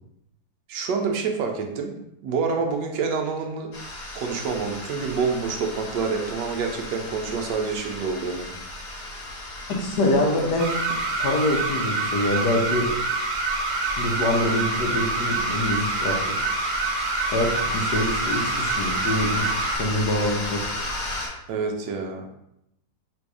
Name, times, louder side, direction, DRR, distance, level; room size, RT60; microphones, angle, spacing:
voice 1, 0.7-3.7 4.1-8.5 21.5-22.3, right 5 dB, 90° right, 3 dB, 1.3 m, -27 dB
sound 1, 3.7-21.3, left 1 dB, 55° left, 1.4 m, -34 dB
voice 2, 9.8-10.8 11.2-12.9 14.0-16.2 16.4-16.5 17.3-19.5 19.7-20.6, left 1 dB, 75° left, 0 dB, 1.5 m, -25 dB
sound 2, 10.6-19.8, right 3 dB, 60° right, 1.0 m, -27 dB
3.8 x 2.6 x 4.7 m, 0.80 s
omnidirectional pair, 1.8 m